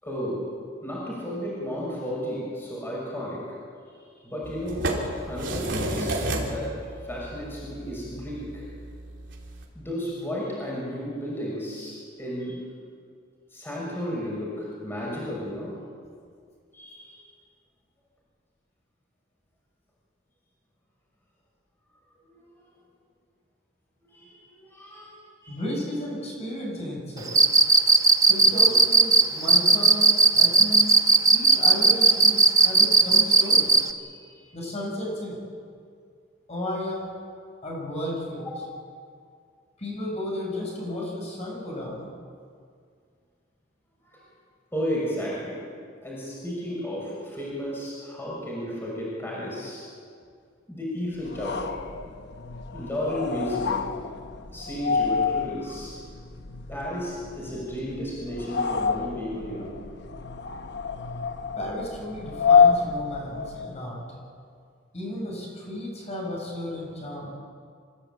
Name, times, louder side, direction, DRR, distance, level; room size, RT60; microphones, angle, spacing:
voice 1, 0.0-0.4 0.8-3.4 4.2-6.7 7.0-8.7 9.7-12.6 13.5-15.8 16.7-17.2 22.3-22.4 24.0-25.6 34.0-34.6 38.4-38.6 44.0-44.2 44.7-45.6 46.0-49.9 50.7-51.8 52.7-53.9 54.5-56.0 56.7-59.7, equal, 10° left, -5 dB, 6.1 m, -33 dB
sound 1, 4.4-9.6, right 1 dB, 65° right, 3.7 m, -32 dB
voice 2, 25.5-27.4 28.2-31.0 31.3-33.7 34.5-35.4 36.5-37.1 37.6-38.5 39.8-42.1 61.6-64.0 64.9-67.3, left 1 dB, 35° left, -2 dB, 7.2 m, -33 dB
Cricket, 27.3-33.9, right 3 dB, 20° right, 0.9 m, -16 dB
sound 2, 51.2-63.8, left 6 dB, 60° left, 1.0 m, -27 dB
26.5 x 16.0 x 9.0 m, 2.2 s
head